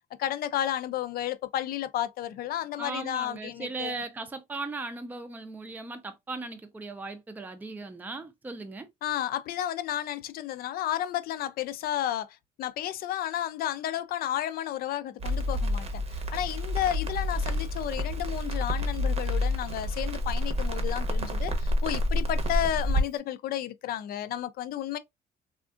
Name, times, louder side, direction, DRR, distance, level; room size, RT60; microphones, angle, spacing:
voice 1, 0.2-4.0 9.0-16.0 16.3-25.0, left 11 dB, 60° left, 0.4 m, -32 dB
voice 2, 2.8-8.9, right 3 dB, 10° right, 0.4 m, -37 dB
Crackle, 15.2-23.0, left 1 dB, 35° right, 0.7 m, -28 dB
3.5 x 2.4 x 2.4 m
cardioid pair, 110°, 17 cm